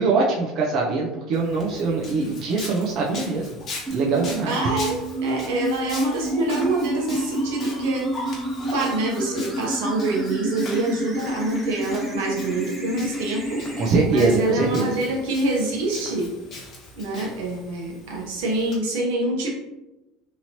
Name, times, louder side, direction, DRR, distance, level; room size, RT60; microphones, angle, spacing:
voice 1, 0.0-3.6 3.9-4.5 13.8-14.9, right 3 dB, 55° right, -2 dB, 0.5 m, -22 dB
Walk footsteps, 1.3-18.8, left 2 dB, 40° left, 1.0 m, -40 dB
sound 1, 3.9-13.9, right 1 dB, 5° right, 0.9 m, -29 dB
voice 2, 4.5-8.4 8.7-13.6 14.1-16.3 17.0-19.5, right 2 dB, 90° right, -1 dB, 0.9 m, -26 dB
3.0 x 2.7 x 2.9 m, 0.97 s
supercardioid pair, 120°, 0 cm